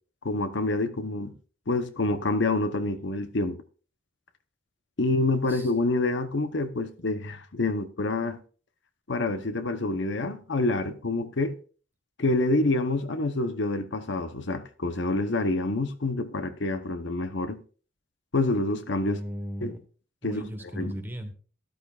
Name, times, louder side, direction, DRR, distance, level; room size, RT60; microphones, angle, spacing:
voice 1, 0.2-1.4 1.7-3.6 5.0-8.4 9.1-11.6 12.2-17.6 18.3-19.2 19.6-19.7 20.2-20.4 20.8-20.9, left 2 dB, 65° left, 0.8 m, -27 dB
voice 2, 19.0-19.8 20.2-21.3, equal, 10° right, 1.3 m, -36 dB
13.0 x 11.5 x 2.4 m
head